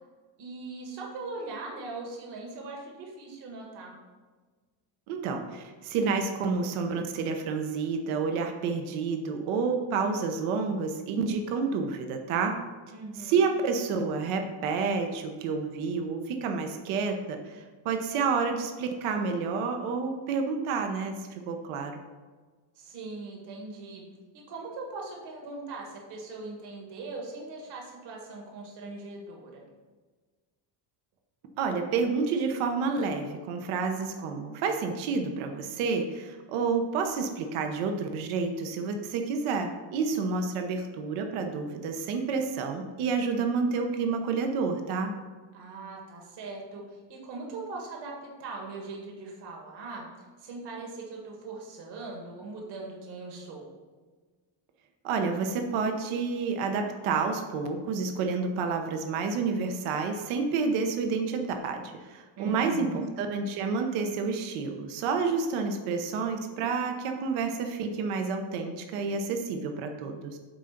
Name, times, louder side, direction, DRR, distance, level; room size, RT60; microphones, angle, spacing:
voice 1, 0.4-4.0 12.9-13.5 22.7-24.0 24.3-29.6 45.5-50.0 50.4-53.7 62.4-63.1, right 3 dB, 55° right, 0 dB, 1.7 m, -40 dB
voice 2, 5.1-12.6 13.2-22.0 31.6-45.1 55.0-62.9 63.2-70.4, right 4 dB, 80° right, 5 dB, 1.0 m, -29 dB
9.1 x 3.8 x 5.8 m, 1.4 s
cardioid pair, 145°, 49 cm